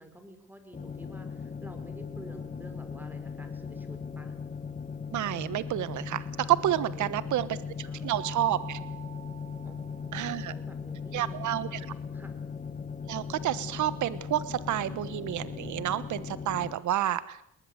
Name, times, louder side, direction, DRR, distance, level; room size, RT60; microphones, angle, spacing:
voice 1, 0.0-4.4 6.9-7.5 7.8-8.1 9.6-11.6 12.1-12.4, right 1 dB, 5° right, 7 dB, 5.2 m, -50 dB
sound 1, 0.7-16.7, left 6 dB, 25° left, 1.4 m, -38 dB
voice 2, 5.1-7.5 7.8-8.8 10.1-10.5 11.1-11.8 13.1-17.4, right 12 dB, 75° right, 15 dB, 1.3 m, -29 dB
Mallet percussion, 8.2-10.7, right 13 dB, 55° right, 5.2 m, -47 dB
20.5 x 20.0 x 8.0 m, 0.72 s
cardioid pair, 90°, 30 cm